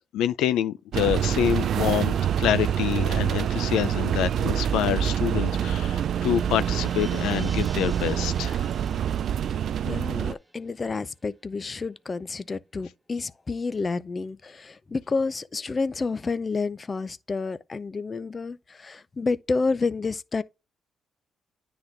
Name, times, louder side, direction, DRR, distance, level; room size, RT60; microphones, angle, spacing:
voice 1, 0.1-8.7, left 11 dB, 90° left, 0.5 m, -26 dB
sound 1, 0.9-10.3, right 9 dB, 65° right, 0.3 m, -26 dB
sound 2, 5.0-11.4 11.7-11.8, right 2 dB, 15° right, 1.0 m, -49 dB
voice 2, 9.8-20.4, left 4 dB, 30° left, 0.5 m, -29 dB
9.8 x 4.0 x 3.3 m
cardioid pair, 90°, 0 cm